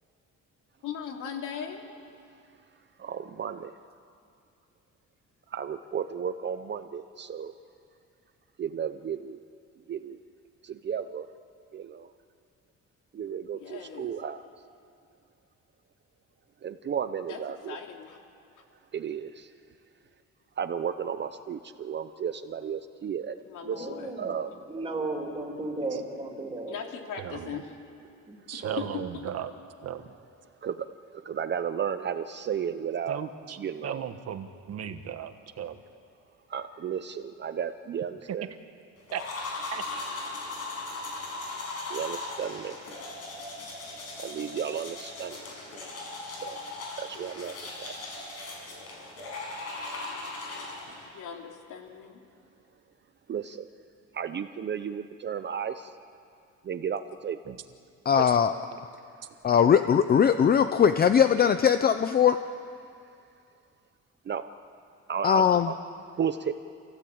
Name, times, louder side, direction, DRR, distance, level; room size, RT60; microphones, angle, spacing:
voice 1, 0.8-1.9 13.5-14.1 17.3-17.4 17.7-18.2 23.5-24.1 26.7-27.7 28.5-29.0 47.1-47.3 51.1-52.2, left 7 dB, 75° left, 2 dB, 3.0 m, -39 dB
voice 2, 3.0-3.8 5.5-7.5 8.6-9.4 9.9-10.2 10.6-11.3 11.7-12.1 13.1-14.4 16.6-17.8 18.9-19.5 20.6-23.4 23.6-24.8 28.6-29.1 30.6-33.2 33.6-34.1 36.5-38.5 41.9-42.8 44.2-45.4 46.3-46.6 47.0-47.9 53.3-53.7 54.1-55.9 56.6-57.5 64.3-64.5 65.1-65.8 66.1-66.5, right 8 dB, 35° right, 10 dB, 0.7 m, -34 dB
voice 3, 23.7-24.3 24.7-26.7 28.3-28.4, right 2 dB, 20° right, 0 dB, 3.1 m, -34 dB
voice 4, 27.2-27.6 28.5-29.5 29.8-30.2 33.1-33.6 33.8-35.8 39.1-39.2 39.7-39.8 57.5-57.6, right 9 dB, 55° right, 9 dB, 1.3 m, -36 dB
sound 1, 39.1-51.1, left 2 dB, 55° left, 6.5 m, -38 dB
voice 5, 58.1-58.5 59.4-62.4 65.2-65.7, left 8 dB, 30° left, 9 dB, 0.6 m, -20 dB
27.0 x 16.5 x 8.7 m, 2.4 s
cardioid pair, 165°, 31 cm